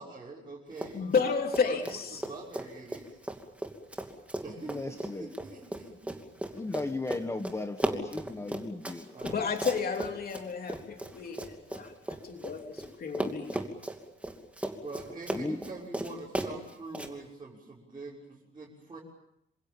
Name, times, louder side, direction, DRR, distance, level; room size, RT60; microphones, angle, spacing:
voice 1, 0.0-1.0 1.7-1.8 2.1-3.2 4.4-5.9 9.1-9.4 14.8-19.0, right 3 dB, 25° right, -6 dB, 6.3 m, -44 dB
Run, 0.7-1.3 1.5-12.9 13.1-17.1, right 1 dB, 5° right, 2.7 m, -36 dB
voice 2, 0.9-2.2 9.2-13.6, left 5 dB, 50° left, 3 dB, 3.3 m, -32 dB
voice 3, 4.7-5.3 6.5-9.7 15.3-15.6, left 2 dB, 15° left, 7 dB, 1.4 m, -36 dB
28.0 x 26.5 x 7.2 m, 0.76 s
wide cardioid pair, 180°, 20 cm